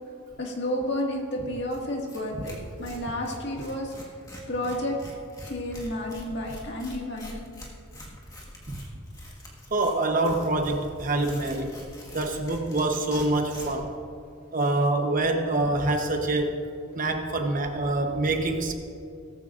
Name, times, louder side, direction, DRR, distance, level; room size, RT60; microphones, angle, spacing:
voice 1, 0.4-3.9 4.5-5.0 5.4-7.4, left 1 dB, 55° left, 0 dB, 2.0 m, -31 dB
Tearing, 1.7-1.8 2.1-2.2 2.4-13.9, left 1 dB, 15° left, 1.8 m, -44 dB
voice 2, 9.7-11.7 12.1-13.9 14.5-16.6 16.9-18.7, right 2 dB, 40° right, 4 dB, 1.0 m, -25 dB
17.5 x 14.5 x 2.6 m, 2.4 s
head